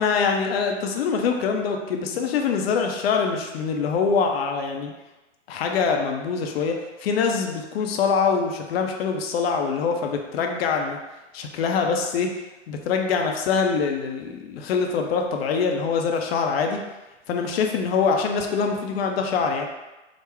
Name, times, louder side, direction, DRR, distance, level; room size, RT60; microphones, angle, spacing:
voice 1, 0.0-4.9 5.5-11.0 11.3-12.3 12.7-16.8 17.3-19.7, left 5 dB, 55° left, 3 dB, 0.6 m, -24 dB
3.7 x 2.1 x 3.3 m, 1.1 s
hypercardioid pair, 120°, 37 cm